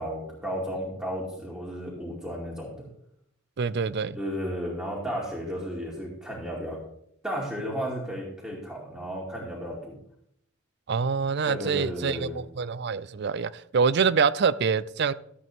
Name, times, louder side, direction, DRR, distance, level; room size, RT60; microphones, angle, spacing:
voice 1, 0.0-2.9 4.1-6.8 7.2-10.0 11.5-12.4, equal, 5° right, 2.5 m, -33 dB
voice 2, 3.6-4.2 10.9-15.1, right 5 dB, 55° right, 0.4 m, -25 dB
14.5 x 8.2 x 3.6 m
head